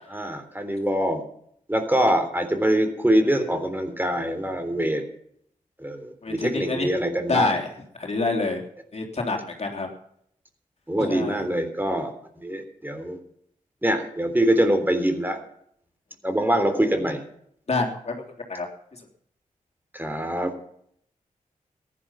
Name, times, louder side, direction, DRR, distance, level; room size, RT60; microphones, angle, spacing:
voice 1, 0.1-1.2 1.7-5.0 5.8-7.5 10.9-12.1 12.4-13.2 13.8-15.4 16.2-17.2 19.9-20.6, right 1 dB, 15° right, 7 dB, 3.5 m, -24 dB
voice 2, 6.2-6.9 7.3-7.7 7.9-8.6 8.9-9.9 11.0-11.4 17.7-18.1 18.5-18.7, left 3 dB, 50° left, 1 dB, 3.3 m, -26 dB
14.5 x 11.0 x 5.8 m, 0.68 s
supercardioid pair, 40°, 14 cm